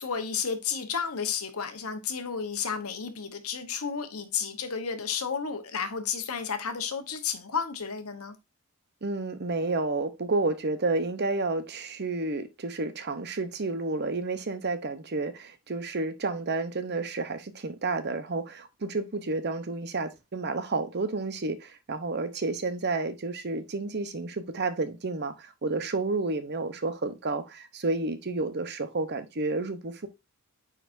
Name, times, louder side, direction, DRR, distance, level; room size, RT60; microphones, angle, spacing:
voice 1, 0.0-8.4, left 6 dB, 90° left, 1.1 m, -32 dB
voice 2, 9.0-30.1, right 3 dB, 50° right, 0.9 m, -30 dB
9.3 x 4.2 x 2.6 m
head